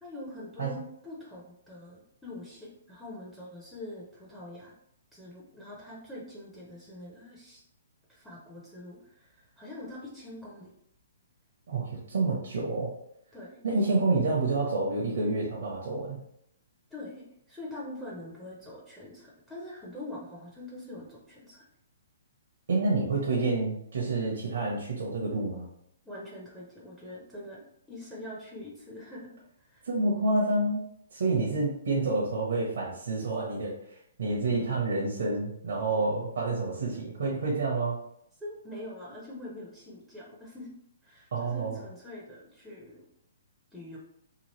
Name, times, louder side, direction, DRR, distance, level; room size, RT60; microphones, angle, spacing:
voice 1, 0.0-4.7 5.1-7.6 8.1-10.7 13.3-13.8 16.9-21.6 26.0-27.6 27.9-29.9 38.4-40.7 41.0-43.0 43.7-44.0, left 1 dB, 5° left, -6 dB, 0.7 m, -44 dB
voice 2, 11.7-12.9 13.6-16.2 22.7-25.7 29.9-30.8 31.1-33.7 34.2-38.0 41.3-41.8, right 3 dB, 70° right, -4 dB, 0.8 m, -28 dB
2.9 x 2.4 x 3.0 m, 0.73 s
hypercardioid pair, 145°, 0 cm